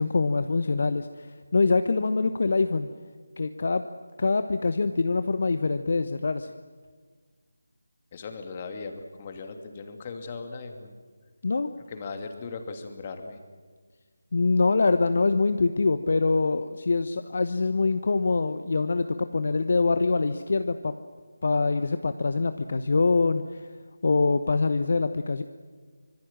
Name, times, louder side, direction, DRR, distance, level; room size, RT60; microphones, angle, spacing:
voice 1, 0.0-2.9 3.4-3.9 4.2-6.5 11.4-11.7 14.3-20.9 21.4-23.7 24.0-25.4, left 3 dB, 50° left, 10 dB, 1.0 m, -24 dB
voice 2, 8.1-11.0 11.9-13.4, left 4 dB, 25° left, 5 dB, 2.6 m, -38 dB
25.5 x 24.5 x 7.6 m, 1.5 s
figure-of-eight pair, 160°, 0 cm